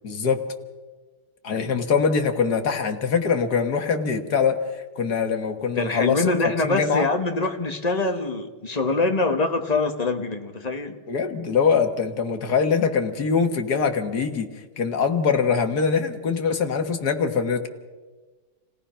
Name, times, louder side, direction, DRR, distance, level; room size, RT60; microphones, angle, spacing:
voice 1, 0.0-0.4 1.4-7.1 11.1-14.5 14.8-17.7, left 5 dB, 50° left, 6 dB, 1.9 m, -23 dB
voice 2, 1.5-1.8 5.8-11.0, left 3 dB, 25° left, 5 dB, 1.1 m, -24 dB
29.0 x 17.5 x 5.7 m, 1.3 s
omnidirectional pair, 2.3 m